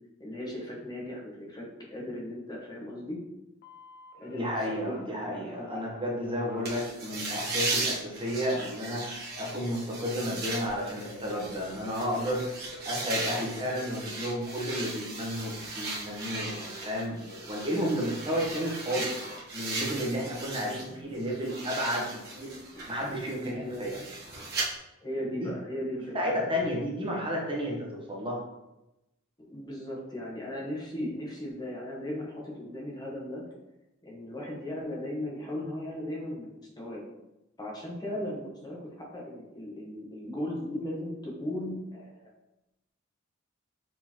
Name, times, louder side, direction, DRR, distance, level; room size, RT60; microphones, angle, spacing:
voice 1, 0.2-3.2 4.2-5.9 20.7-20.8 23.2-23.9 25.0-26.4 29.4-33.4 34.0-37.0 37.6-42.3, left 1 dB, 20° left, -3 dB, 0.9 m, -37 dB
Telephone, 3.6-7.9 8.4-11.9 12.1-14.6 15.1-15.6, left 1 dB, 50° left, 0.8 m, -50 dB
voice 2, 4.3-12.6 12.8-19.1 19.5-22.5 22.9-24.0 25.4-25.5 26.1-28.4, equal, 25° right, -2 dB, 0.9 m, -32 dB
sound 1, 6.6-20.9 21.2-24.6, right 3 dB, 50° right, 1.1 m, -37 dB
4.7 x 3.8 x 2.8 m, 0.94 s
head